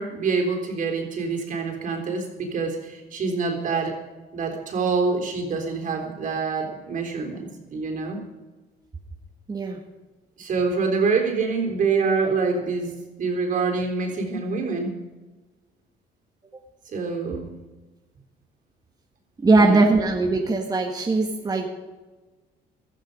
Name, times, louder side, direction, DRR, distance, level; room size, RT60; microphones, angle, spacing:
voice 1, 0.0-4.0 4.3-8.2 10.4-15.0 16.9-17.5 19.5-19.9, right 4 dB, 50° right, 3 dB, 3.7 m, -26 dB
voice 2, 9.5-9.8 19.4-21.7, right 3 dB, 20° right, 2 dB, 1.6 m, -20 dB
15.5 x 13.5 x 5.3 m, 1.2 s
cardioid pair, 110°, 17 cm